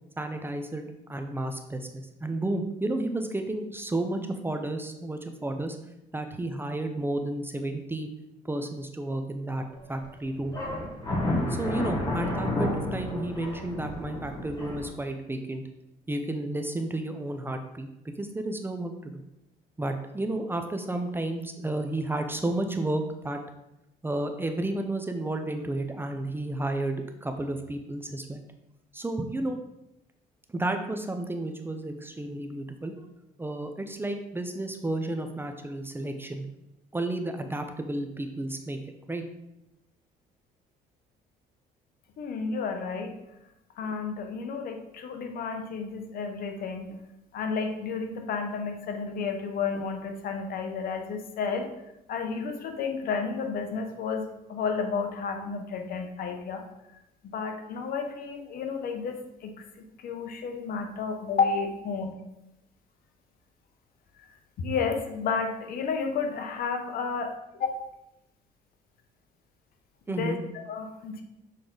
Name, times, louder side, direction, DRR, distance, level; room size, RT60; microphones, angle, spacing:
voice 1, 0.2-5.8 6.1-8.1 8.5-9.6 9.9-10.6 11.5-15.6 16.1-19.1 19.8-23.4 24.0-28.4 28.9-29.6 30.5-32.9 33.4-36.5 36.9-38.8 39.1-39.2 70.1-70.4, right 2 dB, 15° right, 5 dB, 0.5 m, -32 dB
sound 1, 9.7-10.0 10.5-14.9, left 1 dB, 25° left, 1.6 m, -30 dB
voice 2, 42.2-43.2 43.8-47.0 47.3-51.7 52.1-56.6 57.2-59.5 60.0-62.1 64.3-67.8 70.1-71.2, left 5 dB, 60° left, 5 dB, 0.9 m, -31 dB
6.8 x 3.7 x 3.8 m, 0.91 s
cardioid pair, 110°, 17 cm